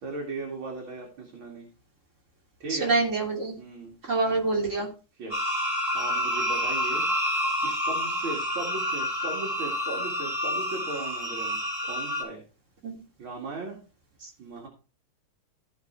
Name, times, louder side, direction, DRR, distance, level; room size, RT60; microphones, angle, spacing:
voice 1, 0.0-1.7 2.6-2.9 3.6-4.0 5.2-7.1 7.6-11.6 11.9-12.4 13.2-13.8 14.4-14.7, right 3 dB, 80° right, -1 dB, 3.1 m, -37 dB
voice 2, 2.7-3.5 4.1-4.9 12.8-13.0, right 3 dB, 35° right, 0 dB, 3.3 m, -26 dB
sound 1, 5.3-12.2, equal, 20° right, 5.6 m, -28 dB
15.0 x 5.5 x 4.6 m, 0.34 s
omnidirectional pair, 2.2 m